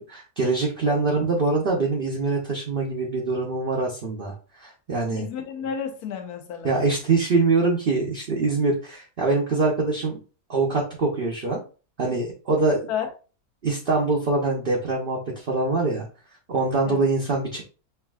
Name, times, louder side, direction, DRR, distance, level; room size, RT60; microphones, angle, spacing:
voice 1, 0.0-5.3 6.6-10.2 10.5-11.6 12.0-12.9 13.6-16.1 16.5-17.6, right 3 dB, 45° right, 0.8 m, -24 dB
voice 2, 5.1-6.7 12.9-13.1 16.9-17.1, left 8 dB, 80° left, 1.2 m, -31 dB
5.7 x 2.7 x 2.3 m
omnidirectional pair, 1.7 m